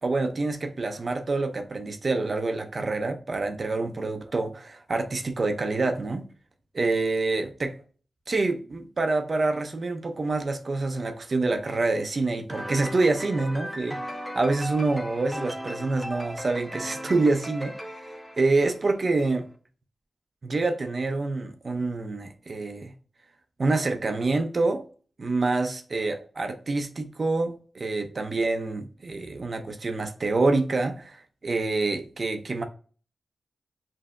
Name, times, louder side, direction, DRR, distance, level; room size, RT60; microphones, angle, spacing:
voice 1, 0.0-6.2 6.7-7.8 8.3-14.0 14.3-18.0 18.4-19.5 20.4-22.9 23.6-24.8 25.2-32.6, right 3 dB, 50° right, 0.6 m, -26 dB
sound 1, 12.5-19.1, equal, ahead, 0.6 m, -37 dB
5.1 x 2.7 x 2.2 m
cardioid pair, 70°, 0 cm